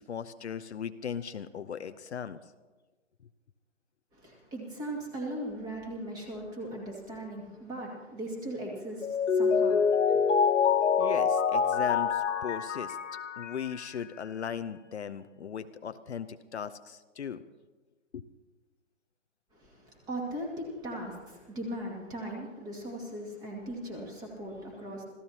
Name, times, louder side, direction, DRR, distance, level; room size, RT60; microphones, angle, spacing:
voice 1, 0.0-2.4 11.0-13.0 13.4-17.4 18.1-18.2, left 7 dB, 60° left, 10 dB, 0.8 m, -38 dB
voice 2, 4.1-10.8 19.5-25.0, right 1 dB, 10° right, 0 dB, 2.3 m, -39 dB
Mallet percussion, 9.0-14.0, left 6 dB, 80° left, 1.2 m, -26 dB
26.5 x 15.5 x 2.9 m, 1.2 s
hypercardioid pair, 160°, 37 cm